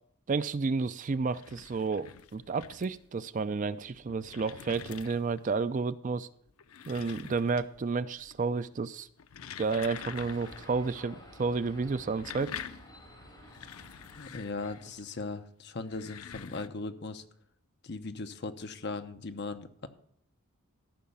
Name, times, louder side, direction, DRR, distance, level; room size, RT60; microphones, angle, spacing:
voice 1, 0.3-6.3 6.9-9.1 9.6-12.5, right 4 dB, 35° right, 14 dB, 0.4 m, -31 dB
sound 1, 1.1-3.1 3.8-5.5 6.5-7.9 8.2-8.7 9.1-10.8 11.1-11.2 11.9-15.0 15.8-16.7, left 8 dB, 80° left, 0.6 m, -46 dB
sound 2, 9.9-15.3, equal, 20° left, 4.9 m, -52 dB
voice 2, 14.2-17.2 17.8-19.9, left 3 dB, 50° left, 8 dB, 0.8 m, -38 dB
14.0 x 5.7 x 7.0 m, 0.69 s
head